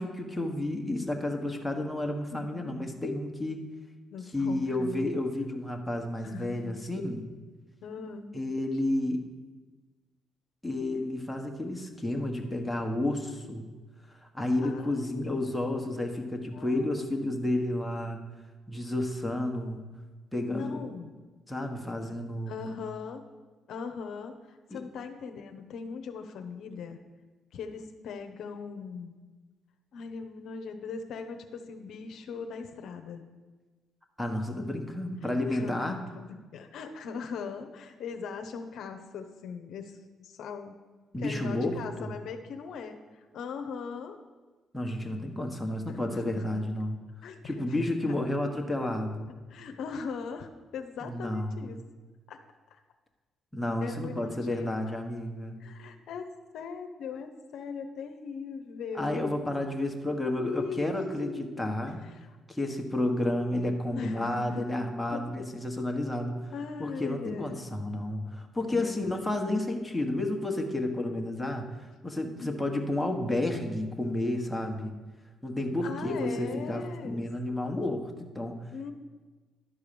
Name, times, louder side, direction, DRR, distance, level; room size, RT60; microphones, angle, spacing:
voice 1, 0.0-3.6 4.3-7.2 8.3-9.3 10.6-13.7 14.2-18.2 18.7-19.8 20.3-20.8 21.5-22.6 24.7-24.8 34.2-36.0 41.1-42.1 44.7-47.0 47.4-49.3 51.0-51.7 53.5-55.6 59.0-62.0 62.5-66.4 66.8-74.9 75.4-78.6, left 1 dB, 5° left, 2 dB, 1.4 m, -31 dB
voice 2, 2.3-2.8 4.1-5.1 6.2-6.9 7.8-8.3 14.6-15.2 16.5-16.9 20.5-21.1 22.5-23.2 23.7-27.0 27.5-29.2 29.9-33.2 35.2-40.8 41.2-43.0 43.3-44.2 45.9-46.7 47.2-48.2 49.3-51.8 52.3-52.4 53.8-54.7 55.6-56.3 56.5-59.3 60.3-61.6 62.0-62.3 63.9-64.7 65.1-65.2 66.5-67.6 68.7-69.6 72.2-72.5 75.8-77.2 78.7-78.9, left 5 dB, 75° left, 5 dB, 0.8 m, -40 dB
11.5 x 4.8 x 6.9 m, 1.3 s
cardioid pair, 90°, 0 cm